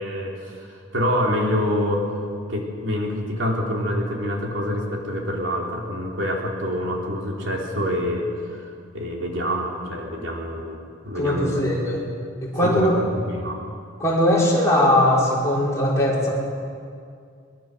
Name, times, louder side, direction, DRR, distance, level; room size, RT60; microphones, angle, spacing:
voice 1, 0.0-2.0 2.5-10.8 11.1-11.6 12.6-13.6, equal, 65° right, -1 dB, 3.8 m, -26 dB
voice 2, 11.1-12.0 12.4-13.0 14.0-16.3, left 1 dB, 15° left, -5 dB, 5.5 m, -20 dB
23.5 x 22.0 x 6.9 m, 2.2 s
head